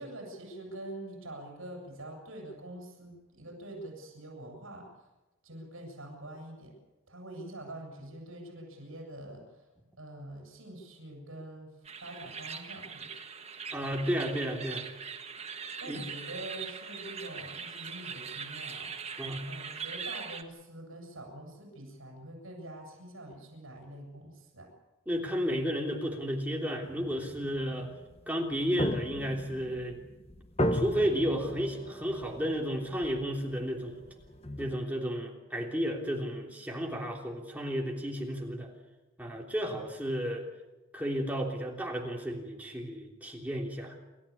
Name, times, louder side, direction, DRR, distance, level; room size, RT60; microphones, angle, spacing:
voice 1, 0.0-5.1 5.4-6.7 7.1-9.7 10.0-13.2 15.8-19.2 19.5-24.7, right 1 dB, 75° right, 1 dB, 7.7 m, -45 dB
sound 1, 11.8-20.4, right 6 dB, 30° right, 1.5 m, -41 dB
voice 2, 13.7-14.8 15.9-16.0 19.2-19.4 25.1-27.9 28.3-30.0 30.7-34.0 34.6-38.7 39.2-40.4 40.9-43.9, equal, 5° right, -1 dB, 3.2 m, -32 dB
sound 2, 26.8-34.7, equal, 30° left, 1.1 m, -36 dB
28.5 x 13.5 x 8.6 m, 1.1 s
head